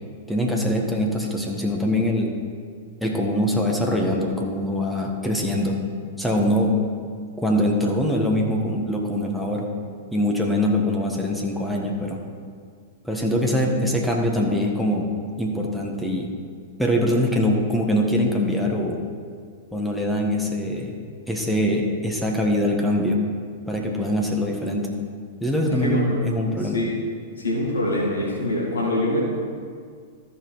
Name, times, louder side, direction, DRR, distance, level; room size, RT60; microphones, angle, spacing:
voice 1, 0.3-2.3 3.0-5.8 6.2-6.7 7.4-9.7 10.1-12.2 13.0-15.1 15.4-16.3 16.8-19.0 19.7-21.0 21.3-23.2 23.7-24.9 25.4-26.8, left 1 dB, ahead, -1 dB, 1.4 m, -23 dB
voice 2, 25.7-26.2 26.7-26.9 27.4-29.2, left 1 dB, 75° left, -3 dB, 2.5 m, -24 dB
13.5 x 5.4 x 4.7 m, 2.1 s
figure-of-eight pair, 100°, 0 cm